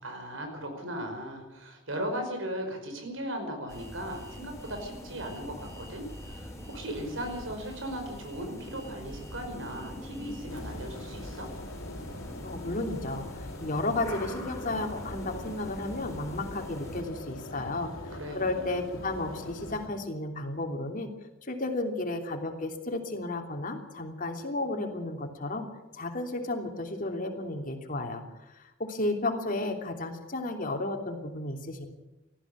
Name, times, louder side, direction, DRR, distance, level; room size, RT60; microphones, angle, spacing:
voice 1, 0.0-11.5 18.1-18.7, right 1 dB, 70° right, 4 dB, 5.2 m, -37 dB
sound 1, 3.7-17.0, left 1 dB, 15° left, 7.1 m, -43 dB
Alarm, 3.7-10.6, right 1 dB, 20° right, 6.1 m, -55 dB
sound 2, 10.5-19.9, left 1 dB, 85° left, 3.1 m, -42 dB
voice 2, 12.4-17.9 18.3-21.1 21.4-25.7 25.9-28.2 28.5-31.9, left 2 dB, 40° left, 3 dB, 3.1 m, -33 dB
19.0 x 14.5 x 9.7 m, 1.0 s
head